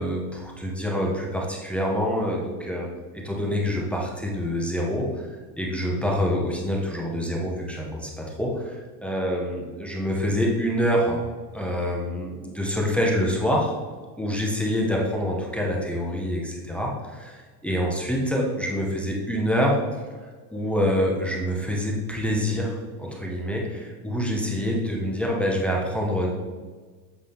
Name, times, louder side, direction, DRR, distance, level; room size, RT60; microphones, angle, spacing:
voice 1, 0.0-2.9 3.1-8.7 9.0-11.2 11.5-13.8 14.2-19.8 20.5-26.3, equal, ahead, -2 dB, 0.7 m, -26 dB
7.8 x 3.9 x 3.4 m, 1.4 s
supercardioid pair, 120°, 50 cm